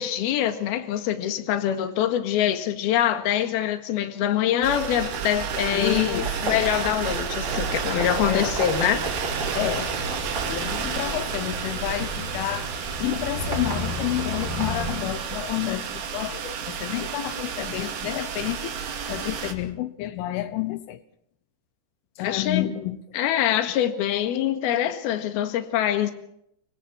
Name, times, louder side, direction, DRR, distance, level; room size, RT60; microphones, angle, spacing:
voice 1, 0.0-9.0 22.2-22.7 23.1-26.1, left 10 dB, 60° left, 3.3 m, -24 dB
sound 1, 4.6-19.5, right 7 dB, 75° right, 5.1 m, -31 dB
sound 2, 5.0-15.8, equal, 25° right, 6.3 m, -34 dB
voice 2, 5.7-6.7 8.2-8.5 9.5-9.9 10.4-18.7 19.1-21.0 22.2-23.0, left 14 dB, 80° left, 3.4 m, -29 dB
27.0 x 24.0 x 4.6 m
omnidirectional pair, 5.6 m